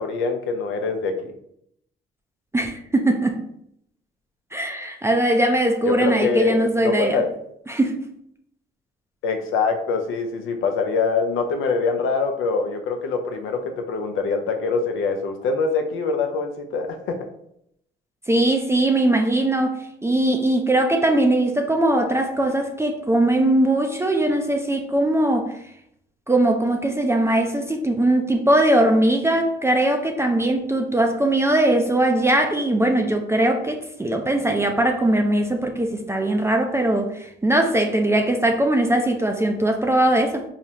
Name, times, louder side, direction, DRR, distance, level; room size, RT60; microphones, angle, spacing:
voice 1, 0.0-1.3 5.8-7.3 9.2-17.3, left 4 dB, 80° left, 0.6 m, -24 dB
voice 2, 2.5-3.4 4.5-7.2 7.7-8.0 18.3-25.6 26.3-40.4, right 1 dB, 15° right, 0.4 m, -20 dB
4.8 x 2.0 x 2.8 m
cardioid pair, 90°, 20 cm